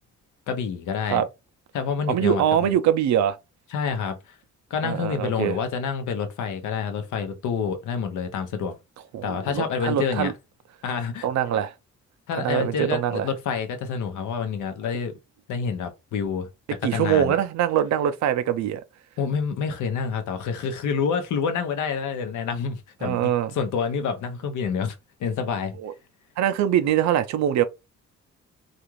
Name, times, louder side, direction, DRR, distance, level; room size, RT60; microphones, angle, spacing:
voice 1, 0.5-1.2 1.7-2.7 3.7-4.3 4.7-8.7 9.2-10.3 10.8-11.3 12.3-15.1 15.5-16.5 16.8-17.4 19.2-25.8, left 6 dB, 80° left, 0.8 m, -28 dB
voice 2, 2.1-3.4 4.8-5.6 9.1-10.3 11.2-11.7 12.4-13.3 16.8-18.8 23.0-23.5 25.8-25.9 26.4-27.6, right 10 dB, 65° right, 0.5 m, -23 dB
2.5 x 2.4 x 3.0 m
cardioid pair, 90°, 30 cm